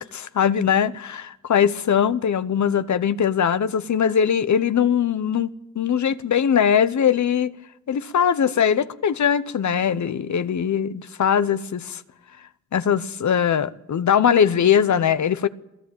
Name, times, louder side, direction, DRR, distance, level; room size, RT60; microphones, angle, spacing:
voice 1, 0.0-5.5 5.7-7.5 7.9-12.0 12.7-15.5, left 8 dB, 75° left, 1.0 m, -21 dB
27.5 x 15.5 x 8.9 m
cardioid pair, 85°, 29 cm